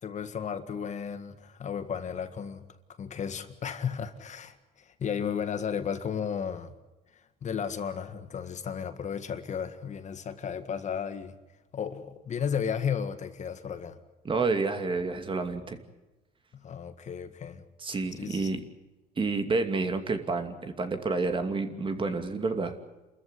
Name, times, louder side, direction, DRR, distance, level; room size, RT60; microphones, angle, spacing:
voice 1, 0.0-2.6 3.0-6.7 7.1-11.3 11.7-14.0 16.5-17.6 18.2-18.5, left 7 dB, 45° left, 1.8 m, -34 dB
voice 2, 14.2-15.8 17.8-18.6 19.2-22.7, right 3 dB, 30° right, 2.6 m, -29 dB
28.0 x 14.5 x 9.8 m
cardioid pair, 110°, 17 cm